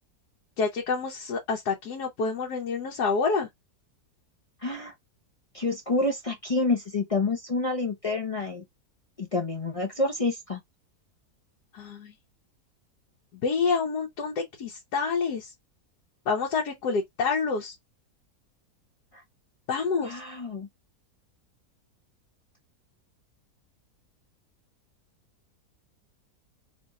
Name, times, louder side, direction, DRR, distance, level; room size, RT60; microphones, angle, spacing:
voice 1, 0.6-3.5 11.7-12.1 13.4-15.5 16.3-17.8 19.7-20.2, left 5 dB, 85° left, 1.4 m, -28 dB
voice 2, 4.6-4.9 5.5-8.6 9.2-10.6 20.0-20.7, left 3 dB, 60° left, 0.3 m, -28 dB
3.3 x 2.4 x 4.0 m
omnidirectional pair, 1.7 m